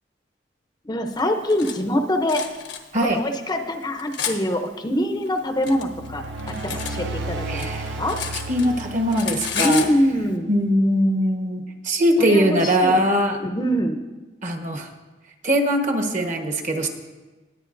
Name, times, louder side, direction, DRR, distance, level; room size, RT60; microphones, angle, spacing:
voice 1, 0.9-2.5 3.0-7.7 8.0-8.2 9.5-10.5 12.2-13.0 13.4-14.0, equal, 25° left, 6 dB, 0.6 m, -24 dB
Cutlery silverware, 1.2-1.8 2.3-2.8 3.5-4.4 5.3-7.0 7.3-8.8 9.1-9.9, left 7 dB, 85° left, 1.1 m, -31 dB
voice 2, 2.9-3.2 7.5-8.0 8.5-9.9 10.5-13.4 14.4-14.9 15.4-16.9, equal, 45° right, 4 dB, 1.2 m, -21 dB
sound 1, 5.7-10.3, right 2 dB, 90° right, 0.9 m, -33 dB
20.0 x 8.3 x 2.6 m, 1.2 s
head